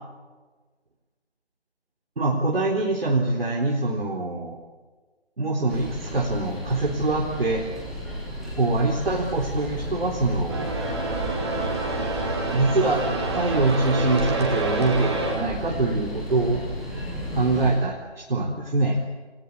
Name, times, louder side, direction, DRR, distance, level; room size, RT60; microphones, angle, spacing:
voice 1, 2.2-4.6 5.4-7.7 8.6-10.7 12.5-13.0 13.3-16.6 17.3-19.0, right 2 dB, 60° right, 0 dB, 3.9 m, -24 dB
sound 1, 5.7-17.7, equal, ahead, 2.6 m, -33 dB
sound 2, 10.5-15.3, right 2 dB, 25° right, 4.2 m, -28 dB
28.5 x 20.0 x 8.5 m, 1.3 s
figure-of-eight pair, 170°, 33 cm